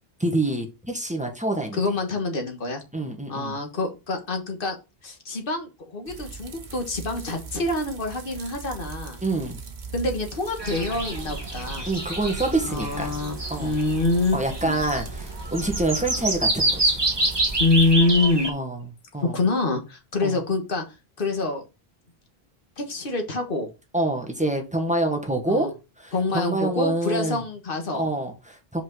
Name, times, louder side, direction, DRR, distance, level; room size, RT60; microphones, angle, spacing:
voice 1, 0.2-1.8 2.9-3.5 9.2-9.6 11.9-13.2 13.5-13.8 14.3-17.0 18.5-18.8 19.1-19.4 20.2-20.4 23.9-25.7 26.0-27.4 27.9-28.8, right 2 dB, 5° right, 1.4 m, -26 dB
voice 2, 1.7-2.8 3.3-4.8 5.0-9.2 9.9-11.9 12.6-14.4 14.6-14.8 17.6-18.5 19.2-20.8 21.2-21.6 22.8-23.7 25.5-25.7 26.1-28.0, left 2 dB, 60° left, 1.6 m, -26 dB
sound 1, 6.1-17.9, right 5 dB, 50° right, 1.1 m, -40 dB
sound 2, 10.6-18.5, right 1 dB, 25° right, 1.4 m, -27 dB
5.5 x 5.0 x 3.9 m
omnidirectional pair, 1.0 m